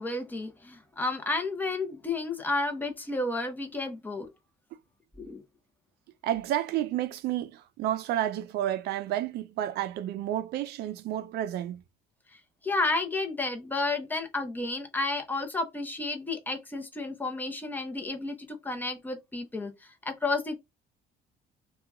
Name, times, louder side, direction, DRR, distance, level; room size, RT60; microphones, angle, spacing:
voice 1, 0.0-4.3 5.2-5.4 12.3-20.6, left 2 dB, 10° left, 0.8 m, -32 dB
voice 2, 6.2-11.8, right 12 dB, 75° right, 0.5 m, -31 dB
2.8 x 2.3 x 3.5 m
cardioid pair, 110°, 17 cm